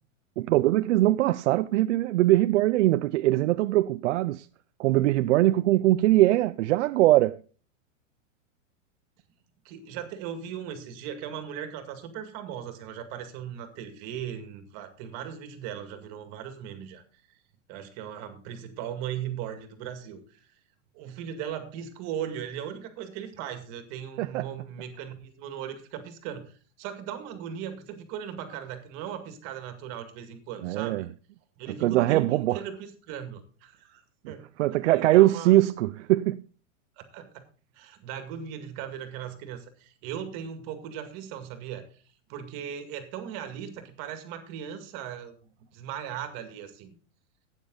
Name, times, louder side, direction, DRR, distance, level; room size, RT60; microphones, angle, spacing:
voice 1, 0.4-4.5 4.8-7.4 24.2-24.5 30.6-31.1 31.8-32.6 34.6-36.4, right 16 dB, 65° right, 0.5 m, -22 dB
voice 2, 9.6-17.0 17.3-17.4 17.7-20.5 20.9-31.1 31.6-34.5 34.8-35.5 37.0-37.4 37.7-42.0 42.3-45.4 45.7-46.9, right 9 dB, 40° right, 2.0 m, -38 dB
12.5 x 9.2 x 3.8 m
supercardioid pair, 145°, 39 cm